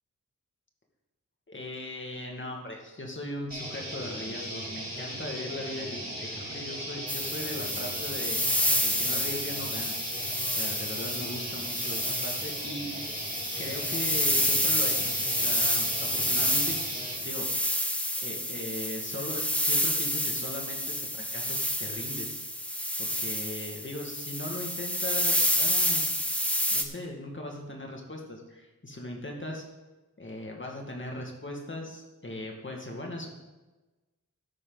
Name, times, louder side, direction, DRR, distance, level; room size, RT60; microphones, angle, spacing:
voice 1, 1.5-8.4 8.8-9.9 10.5-12.9 13.5-15.1 15.4-16.8 17.2-17.8 18.2-22.4 23.0-26.0 26.7-29.6 30.2-33.3, left 1 dB, 35° left, 0 dB, 2.2 m, -39 dB
sound 1, 3.5-17.2, right 1 dB, 25° right, 4.2 m, -37 dB
sound 2, 7.1-26.8, equal, 5° left, 1.1 m, -29 dB
13.0 x 9.4 x 4.1 m, 1.1 s
wide cardioid pair, 100°, 33 cm